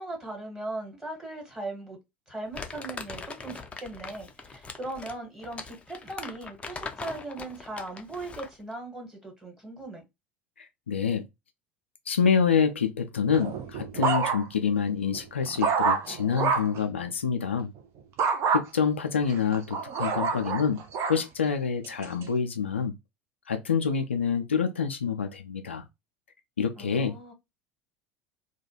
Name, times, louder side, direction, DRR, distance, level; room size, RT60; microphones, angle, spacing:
voice 1, 0.0-2.0 2.3-10.0 26.8-27.3, right 2 dB, 10° right, 1.4 m, -39 dB
Crumpling crinkling, 2.5-8.6, left 4 dB, 20° left, 0.5 m, -41 dB
voice 2, 10.6-11.3 12.1-17.7 18.5-20.8 21.1-22.9 23.5-25.8 26.6-27.2, left 6 dB, 80° left, 0.4 m, -27 dB
sound 1, 13.3-14.7 15.1-16.8 18.2-18.6 19.3-21.2 21.8-22.2, right 5 dB, 45° right, 0.6 m, -27 dB
2.3 x 2.2 x 2.9 m
figure-of-eight pair, 70°, 6 cm